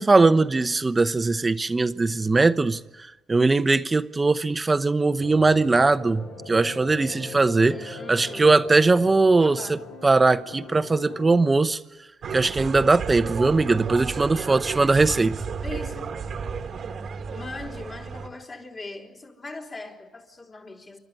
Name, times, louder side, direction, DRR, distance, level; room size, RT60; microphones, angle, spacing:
voice 1, 0.0-2.8 3.3-11.8 12.3-15.4, right 3 dB, 25° right, 0.9 m, -20 dB
sound 1, 5.2-11.5, left 2 dB, 90° left, 3.5 m, -40 dB
voice 2, 7.7-8.7 9.3-9.8 14.5-14.7 15.6-16.1 17.3-21.0, left 3 dB, 35° left, 4.2 m, -40 dB
sound 2, 12.2-18.3, right 5 dB, 55° right, 1.5 m, -33 dB
29.5 x 12.5 x 9.8 m
cardioid pair, 90°, 0 cm